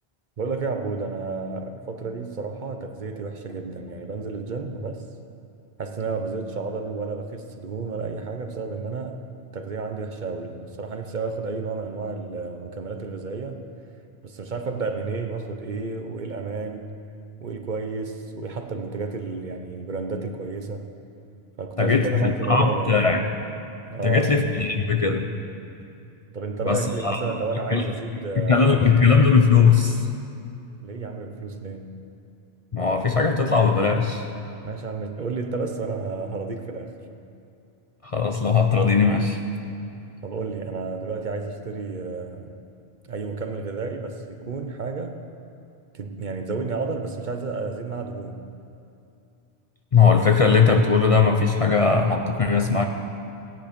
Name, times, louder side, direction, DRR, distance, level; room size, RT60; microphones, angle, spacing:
voice 1, 0.4-5.0 5.8-9.2 9.5-13.6 14.2-17.0 17.4-20.8 21.6-22.9 23.9-24.4 26.3-28.9 30.8-31.9 34.6-36.9 40.2-42.5 43.1-45.2 45.9-48.4, right 4 dB, 50° right, 6 dB, 0.8 m, -31 dB
voice 2, 21.8-23.2 24.0-25.3 26.6-27.3 27.7-27.9 28.4-30.1 32.7-34.3 38.0-39.4 49.9-52.9, left 5 dB, 40° left, 4 dB, 0.6 m, -19 dB
16.5 x 9.3 x 5.1 m, 2.6 s
omnidirectional pair, 1.1 m